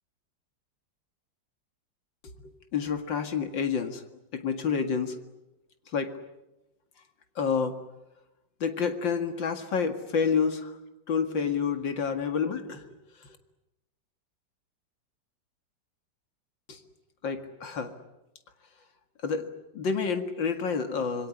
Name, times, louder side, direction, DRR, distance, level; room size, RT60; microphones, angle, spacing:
voice 1, 2.7-4.0 4.3-5.2 5.9-6.1 7.4-7.8 8.6-10.8 11.1-12.9 13.2-13.4 16.7-16.8 17.2-17.9 19.2-21.3, left 6 dB, 80° left, 7 dB, 2.7 m, -29 dB
27.0 x 22.5 x 9.8 m, 0.94 s
omnidirectional pair, 2.0 m